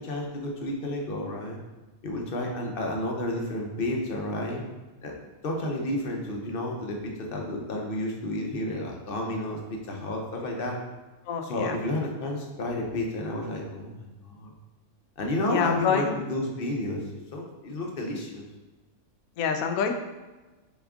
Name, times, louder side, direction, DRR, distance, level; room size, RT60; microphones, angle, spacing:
voice 1, 0.0-1.6 2.0-4.6 5.0-10.8 11.4-14.5 15.2-17.0 17.3-18.4, left 1 dB, 50° left, 0 dB, 0.8 m, -31 dB
voice 2, 11.3-11.8 15.5-16.2 19.4-19.9, left 6 dB, 80° left, 6 dB, 1.0 m, -27 dB
4.3 x 3.5 x 3.6 m, 1.2 s
omnidirectional pair, 1.5 m